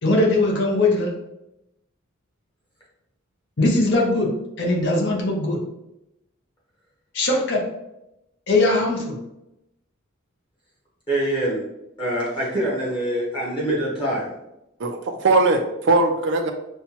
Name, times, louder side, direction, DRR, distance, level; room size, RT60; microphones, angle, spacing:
voice 1, 0.0-1.1 3.6-4.3 4.6-5.6 7.1-7.6 8.5-9.1, left 2 dB, 55° left, -1 dB, 0.8 m, -20 dB
voice 2, 11.1-11.6 12.0-14.3, right 1 dB, 25° left, -5 dB, 1.0 m, -24 dB
voice 3, 14.8-16.5, right 3 dB, 60° right, 5 dB, 0.4 m, -20 dB
5.5 x 2.2 x 2.9 m, 0.88 s
head